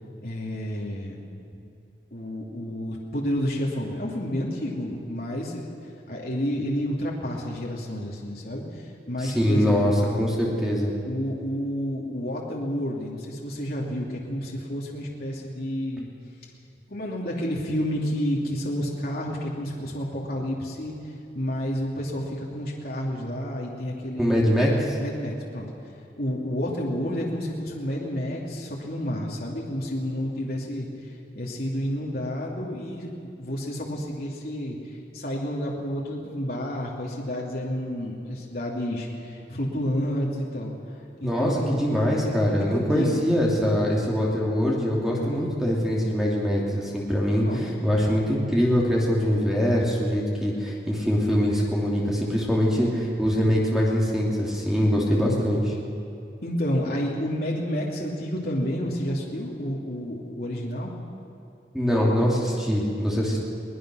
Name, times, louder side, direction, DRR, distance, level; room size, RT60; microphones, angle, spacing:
voice 1, 0.2-1.2 2.1-5.7 6.1-10.0 10.3-10.4 11.0-16.1 16.9-24.3 25.0-25.7 26.2-40.9 41.2-41.8 42.2-43.2 43.7-44.2 45.1-45.4 47.4-47.6 56.4-61.0, equal, 55° left, -3 dB, 2.9 m, -30 dB
voice 2, 9.2-9.9 10.2-10.9 24.2-25.0 41.2-55.7 61.7-63.4, equal, 5° right, -4 dB, 3.0 m, -23 dB
22.5 x 19.5 x 6.4 m, 2.7 s
head